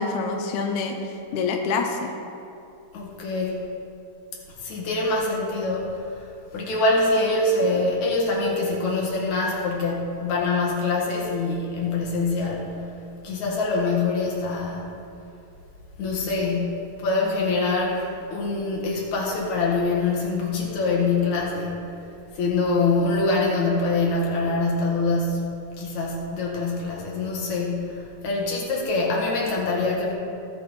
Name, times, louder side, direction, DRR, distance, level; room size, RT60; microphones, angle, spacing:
voice 1, 0.0-2.1, left 4 dB, 80° left, 3 dB, 1.8 m, -26 dB
voice 2, 2.9-3.7 4.5-5.9 6.5-12.7 13.2-14.9 16.0-21.9 22.4-30.1, left 3 dB, 60° left, -3 dB, 2.9 m, -24 dB
18.0 x 6.2 x 4.2 m, 2.7 s
omnidirectional pair, 4.2 m